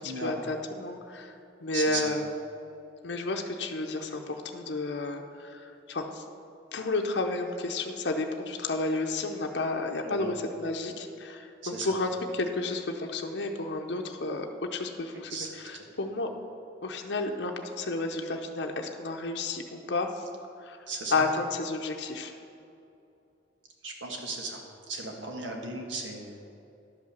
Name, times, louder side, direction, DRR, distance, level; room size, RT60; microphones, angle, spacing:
voice 1, 0.0-1.3 1.6-2.2 3.0-6.2 6.7-14.5 14.7-16.3 16.8-20.2 20.6-20.8 21.1-22.3, left 3 dB, 65° left, 3 dB, 0.6 m, -31 dB
voice 2, 1.7-2.1 10.0-10.3 11.6-12.0 15.1-15.9 20.9-21.3 23.8-24.6 24.9-26.3, right 3 dB, 85° right, 1 dB, 1.5 m, -36 dB
11.5 x 5.6 x 6.6 m, 2.7 s
head